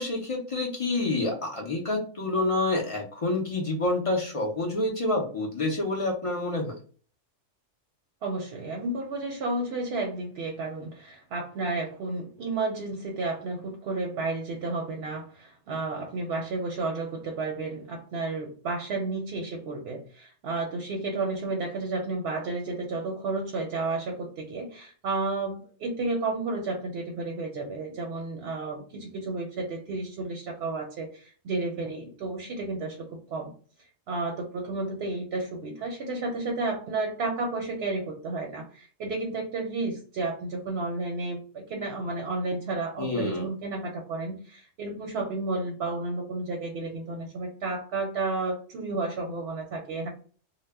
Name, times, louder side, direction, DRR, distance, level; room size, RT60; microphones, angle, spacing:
voice 1, 0.0-6.8 43.0-43.5, left 2 dB, 55° left, -1 dB, 0.4 m, -28 dB
voice 2, 8.2-33.5 33.8-50.1, right 3 dB, 65° right, 2 dB, 0.7 m, -32 dB
2.1 x 2.0 x 3.3 m, 0.41 s
omnidirectional pair, 1.3 m